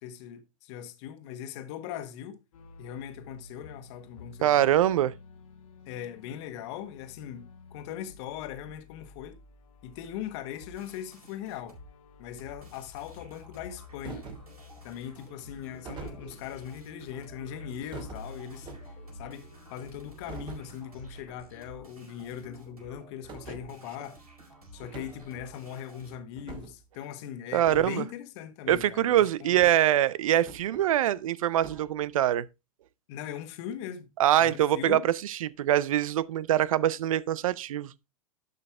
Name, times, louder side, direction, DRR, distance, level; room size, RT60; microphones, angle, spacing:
voice 1, 0.0-2.4 2.8-4.7 5.9-9.4 9.8-11.8 12.2-14.3 14.8-24.2 24.7-29.5 33.1-34.1 34.4-35.1, left 10 dB, 50° left, 1.4 m, -40 dB
sound 1, 2.5-21.2, left 3 dB, 70° left, 1.5 m, -51 dB
voice 2, 4.4-5.1 27.5-28.0 28.7-32.5 34.2-37.9, right 12 dB, 65° right, 0.6 m, -24 dB
sound 2, 10.6-11.9 12.4-26.2, right 1 dB, 90° right, 4.5 m, -52 dB
sound 3, 14.0-14.6 15.9-16.6 17.9-19.1 20.3-20.7 21.1-21.4 21.6-21.7 22.2-22.3 23.3-23.7 24.8-25.3 26.4-26.8 27.6-27.9 28.7-28.9 29.5-30.0 30.5-31.2 31.6-31.9, right 4 dB, 25° right, 2.3 m, -44 dB
11.5 x 5.5 x 3.4 m
hypercardioid pair, 105°, 18 cm